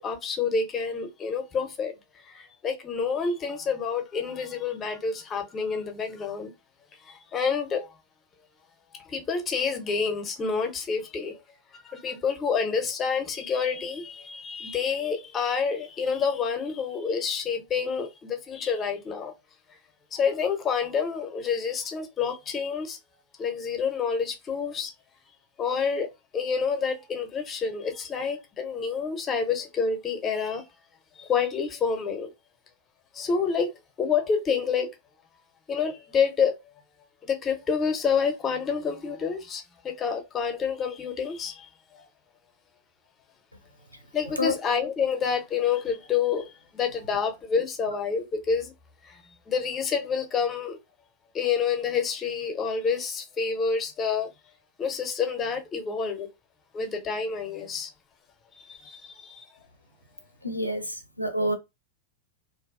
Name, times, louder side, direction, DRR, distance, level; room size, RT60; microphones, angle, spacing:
voice 1, 0.0-1.9 2.2-6.5 7.0-8.0 8.9-11.4 11.7-19.3 20.1-23.0 23.4-24.9 25.6-30.6 31.2-32.3 33.1-33.7 34.0-34.9 35.7-36.5 37.2-41.7 41.9-42.0 44.1-48.7 49.0-49.2 49.5-50.8 51.3-54.3 54.8-56.3 56.7-57.9 58.6-59.4, left 6 dB, 25° left, 0.5 m, -28 dB
voice 2, 60.4-61.5, left 1 dB, 90° left, 0.4 m, -27 dB
2.4 x 2.2 x 2.3 m
figure-of-eight pair, 90°, 0 cm